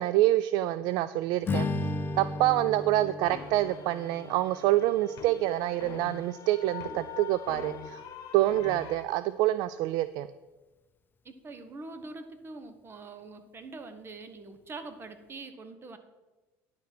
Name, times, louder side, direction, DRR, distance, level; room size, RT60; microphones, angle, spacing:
voice 1, 0.0-1.7 2.2-8.0 8.3-10.3, right 15 dB, 70° right, 15 dB, 0.3 m, -26 dB
Strum, 1.4-5.9, left 2 dB, 25° left, 0.7 m, -35 dB
sound 1, 3.3-9.0, left 9 dB, 60° left, 1.4 m, -44 dB
voice 2, 11.2-16.0, right 3 dB, 30° right, 9 dB, 1.2 m, -44 dB
10.0 x 5.8 x 6.0 m, 1.2 s
supercardioid pair, 100°, 7 cm